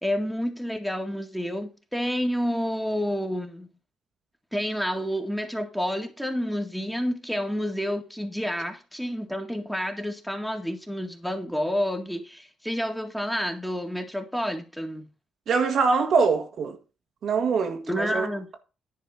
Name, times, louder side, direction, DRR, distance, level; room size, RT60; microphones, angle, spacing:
voice 1, 0.0-3.7 4.5-15.1 17.9-18.5, equal, ahead, 2.0 m, -29 dB
voice 2, 15.5-16.8 17.2-18.3, right 5 dB, 60° right, 1.7 m, -23 dB
10.5 x 4.4 x 7.0 m
cardioid pair, 90°, 0 cm